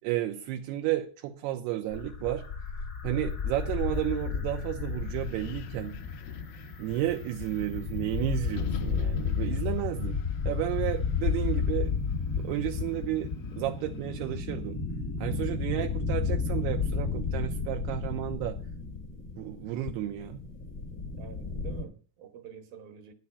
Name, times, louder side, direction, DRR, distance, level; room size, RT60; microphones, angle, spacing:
voice 1, 0.0-2.5 3.0-6.0 6.8-10.2 10.5-11.9 12.4-14.8 15.2-18.6 19.4-20.4, right 13 dB, 85° right, 2.7 m, -32 dB
sound 1, 1.9-21.8, left 5 dB, 55° left, 0.9 m, -33 dB
Wind, 4.5-14.4, left 8 dB, 80° left, 2.1 m, -46 dB
voice 2, 21.2-23.1, right 7 dB, 70° right, 2.9 m, -48 dB
9.7 x 6.5 x 8.2 m
omnidirectional pair, 4.8 m